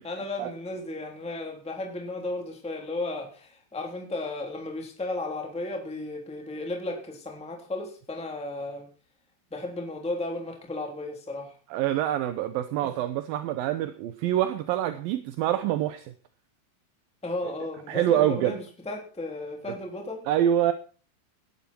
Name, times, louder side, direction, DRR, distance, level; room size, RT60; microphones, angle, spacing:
voice 1, 0.0-8.9 9.5-11.5 12.8-13.0 17.2-20.2, left 2 dB, ahead, 2.8 m, -34 dB
voice 2, 11.7-16.1 17.9-18.6 20.3-20.7, right 11 dB, 75° right, 2.4 m, -26 dB
18.0 x 11.5 x 4.5 m
omnidirectional pair, 4.6 m